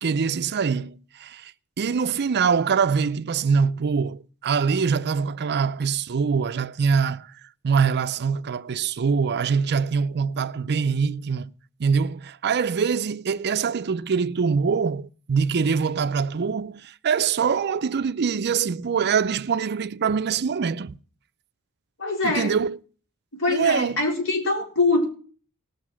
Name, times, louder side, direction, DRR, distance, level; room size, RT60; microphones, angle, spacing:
voice 1, 0.0-1.5 1.8-7.3 7.6-11.5 11.8-21.0 22.2-22.8 23.5-24.0, right 6 dB, 50° right, 0.5 m, -24 dB
voice 2, 22.0-22.5 23.4-25.0, left 2 dB, 60° left, 3.9 m, -23 dB
18.0 x 6.5 x 6.1 m
head